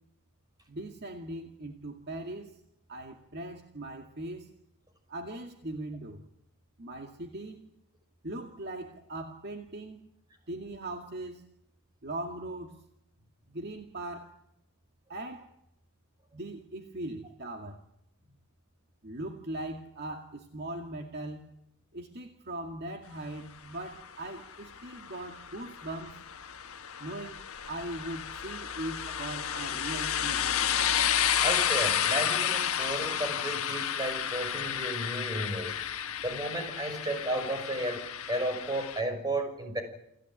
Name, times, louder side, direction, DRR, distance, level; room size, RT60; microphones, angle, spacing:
voice 1, 0.7-2.6 2.9-4.5 5.1-6.2 6.8-7.7 8.2-10.1 10.5-11.5 12.0-12.8 13.5-14.4 15.1-15.5 16.3-17.8 19.0-21.5 21.9-26.2 27.0-27.4 27.7-30.6, right 1 dB, 50° right, 3 dB, 2.2 m, -40 dB
sound 1, 24.0-39.0, left 9 dB, 75° left, 1.3 m, -31 dB
voice 2, 31.4-35.8 36.2-39.8, right 1 dB, 20° right, 5 dB, 6.1 m, -33 dB
29.0 x 16.0 x 9.1 m, 0.81 s
head